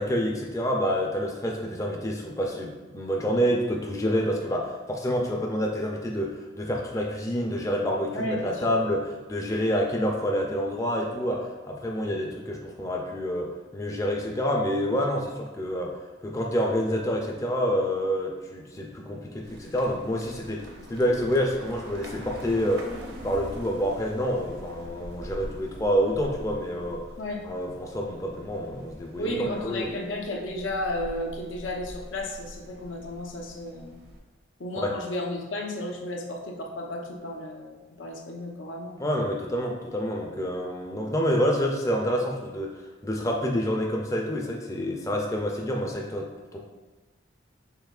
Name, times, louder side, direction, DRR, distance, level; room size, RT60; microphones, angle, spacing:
voice 1, 0.0-16.0 16.2-22.9 23.2-27.0 27.4-29.9 34.8-34.9 39.0-46.6, equal, 15° left, 0 dB, 0.4 m, -28 dB
voice 2, 8.1-8.7 27.2-27.4 29.2-34.0 34.6-39.0, left 1 dB, 85° left, 0 dB, 0.8 m, -33 dB
sound 1, 19.4-34.2, equal, 55° right, 0.7 m, -44 dB
5.6 x 3.6 x 2.4 m, 1.2 s
head